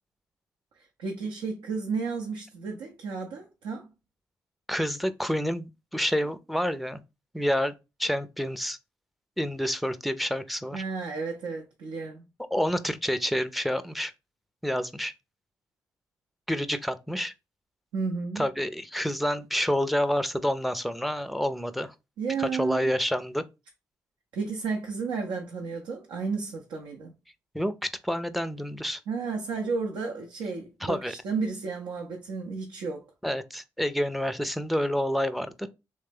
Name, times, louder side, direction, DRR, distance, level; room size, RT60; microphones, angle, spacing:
voice 1, 0.8-3.9 10.7-12.2 17.9-18.5 22.2-22.9 24.3-27.1 29.1-33.1, right 4 dB, 70° right, 0.6 m, -32 dB
voice 2, 4.7-7.0 7.3-7.7 8.0-8.8 9.4-10.8 12.5-14.1 14.6-15.1 16.5-17.3 18.4-21.9 22.4-23.4 27.5-29.0 30.8-31.1 33.2-35.7, equal, ahead, 0.5 m, -28 dB
3.2 x 3.2 x 3.4 m
hypercardioid pair, 40°, 9 cm